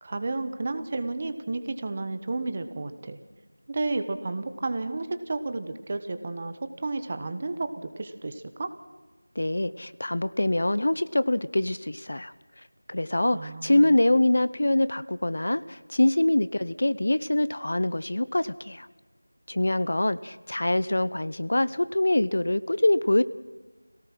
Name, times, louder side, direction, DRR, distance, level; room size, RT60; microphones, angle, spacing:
voice 1, 0.0-3.2 3.7-8.7 13.3-14.0, right 2 dB, 25° right, 10 dB, 1.1 m, -32 dB
voice 2, 9.4-12.3 12.9-18.9 19.5-23.2, left 1 dB, 55° left, 16 dB, 0.8 m, -24 dB
27.0 x 18.0 x 6.1 m, 1.2 s
figure-of-eight pair, 175°, 0 cm